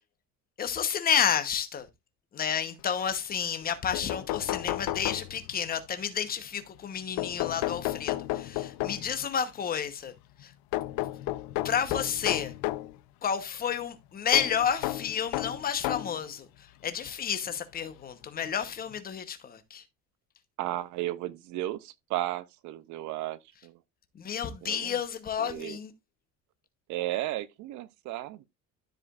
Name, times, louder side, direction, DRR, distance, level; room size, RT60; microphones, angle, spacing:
voice 1, 0.6-1.9 2.3-10.1 10.4-10.5 11.6-12.5 13.2-16.5 16.8-19.8 24.2-25.9, left 8 dB, 25° left, 1.0 m, -30 dB
sound 1, 3.6-3.7 3.9-5.7 7.2-9.2 10.7-12.9 14.3-16.2 17.1-17.2 18.5-18.6 18.9-19.0, left 16 dB, 90° left, 0.6 m, -32 dB
voice 2, 20.6-23.8 24.6-25.0 25.4-25.8 26.9-28.4, right 15 dB, 60° right, 0.6 m, -34 dB
13.0 x 5.0 x 2.4 m
cardioid pair, 175°, 34 cm